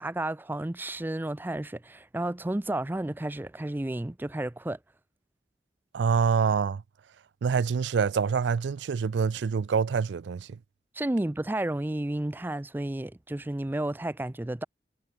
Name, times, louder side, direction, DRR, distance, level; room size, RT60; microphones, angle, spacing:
voice 1, 0.0-4.8 11.0-14.6, right 1 dB, 10° right, 0.4 m, -32 dB
voice 2, 5.9-6.8 7.4-10.6, right 6 dB, 80° right, 0.4 m, -26 dB
head